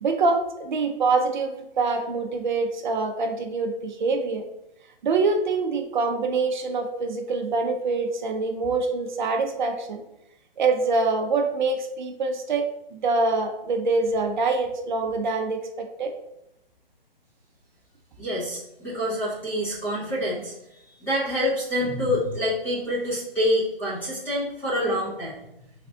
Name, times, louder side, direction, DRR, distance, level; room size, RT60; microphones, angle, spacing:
voice 1, 0.0-4.4 5.0-10.0 10.6-12.6 12.9-16.1, right 3 dB, 50° right, 4 dB, 0.5 m, -25 dB
voice 2, 18.2-20.5 21.0-25.4, equal, 5° left, -8 dB, 0.5 m, -26 dB
3.4 x 2.4 x 3.4 m, 0.83 s
hypercardioid pair, 145°, 29 cm